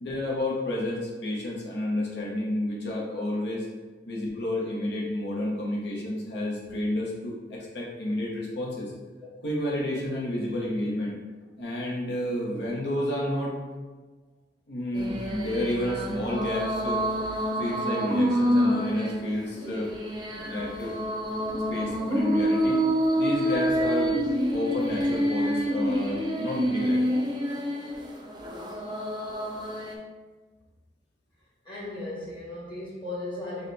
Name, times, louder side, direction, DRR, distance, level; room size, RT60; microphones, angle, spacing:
voice 1, 0.0-3.7 4.1-8.9 9.4-11.2 11.6-13.6 14.7-17.0 17.6-19.9 20.5-20.9 21.7-22.8 23.2-24.2 24.5-27.0, left 1 dB, 70° left, -3 dB, 0.8 m, -30 dB
sound 1, 14.9-29.9, equal, 25° right, 0.6 m, -27 dB
voice 2, 31.6-33.7, left 2 dB, 25° left, -7 dB, 1.5 m, -36 dB
6.4 x 2.2 x 3.3 m, 1.3 s
head